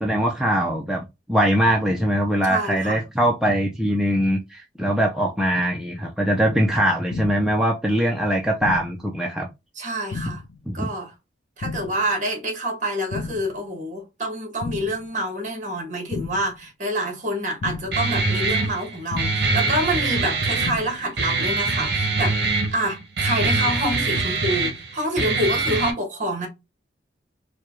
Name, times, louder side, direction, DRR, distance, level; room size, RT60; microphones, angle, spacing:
voice 1, 0.0-9.5 10.7-10.9, equal, 5° right, 0.5 m, -22 dB
voice 2, 2.5-3.0 9.7-10.4 10.7-11.1 11.6-22.4 22.7-26.5, right 1 dB, 40° right, 1.4 m, -27 dB
sound 1, 7.1-7.6 8.6-9.1 10.1-10.6 11.6-12.1 13.1-13.6 14.6-15.1 16.1-16.6 17.6-18.1 19.1-19.6 20.6-21.1, left 3 dB, 80° left, 0.5 m, -33 dB
Guitar, 17.9-25.9, right 3 dB, 60° right, 1.0 m, -24 dB
4.7 x 2.3 x 3.0 m
head